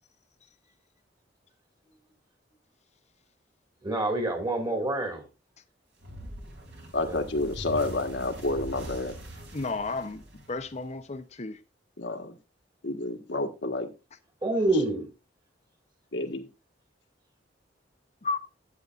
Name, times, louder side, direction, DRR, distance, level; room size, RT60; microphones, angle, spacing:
voice 1, 3.8-5.2 7.1-7.2 14.4-15.1, right 2 dB, 25° right, 2.1 m, -27 dB
sound 1, 6.0-11.1, right 1 dB, 65° right, 3.1 m, -42 dB
voice 2, 6.9-9.1 12.0-12.3 12.8-13.9 16.1-16.5, left 2 dB, 70° left, 1.4 m, -29 dB
voice 3, 9.5-11.6 18.2-18.4, left 3 dB, 40° left, 0.8 m, -33 dB
12.0 x 8.8 x 2.5 m
head